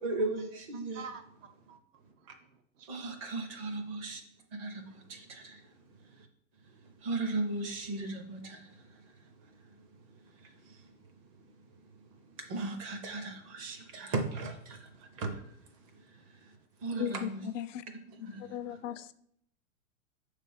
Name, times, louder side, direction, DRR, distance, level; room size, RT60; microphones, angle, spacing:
voice 1, 0.0-1.0 2.9-4.2 4.5-5.7 6.1-6.3 6.7-9.8 10.4-10.9 12.0-12.1 12.4-15.5 16.1-17.5 17.9-18.8, right 3 dB, 25° right, 6 dB, 0.6 m, -38 dB
voice 2, 0.9-3.1 4.9-5.0, right 5 dB, 65° right, 8 dB, 0.9 m, -50 dB
voice 3, 17.0-17.3 17.5-17.8 18.5-19.1, left 10 dB, 65° left, 13 dB, 0.5 m, -36 dB
6.9 x 3.3 x 5.5 m, 0.71 s
supercardioid pair, 170°, 41 cm